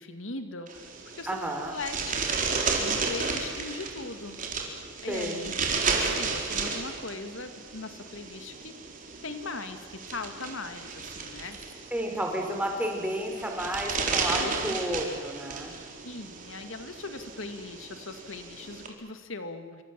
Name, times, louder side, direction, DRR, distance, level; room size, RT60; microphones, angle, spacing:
voice 1, 0.0-4.4 5.0-8.8 9.2-11.7 14.3-14.8 16.0-19.8, left 3 dB, 85° left, 8 dB, 2.2 m, -40 dB
sound 1, 0.7-18.9, right 4 dB, 45° right, 4.1 m, -33 dB
voice 2, 1.3-1.7 5.1-5.5 11.9-15.7, equal, 10° right, 2 dB, 4.6 m, -31 dB
27.5 x 25.5 x 7.6 m, 1.5 s
head